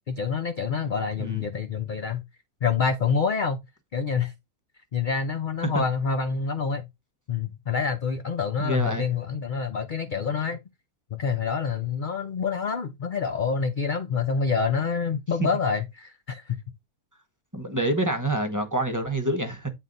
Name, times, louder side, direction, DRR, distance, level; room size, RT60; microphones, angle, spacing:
voice 1, 0.1-2.2 2.6-3.6 3.9-4.3 4.9-6.9 7.3-10.6 11.1-16.6, left 5 dB, 55° left, 0.5 m, -27 dB
voice 2, 8.6-9.1 17.5-19.7, right 1 dB, 15° right, 1.0 m, -27 dB
9.2 x 3.8 x 4.0 m
omnidirectional pair, 1.6 m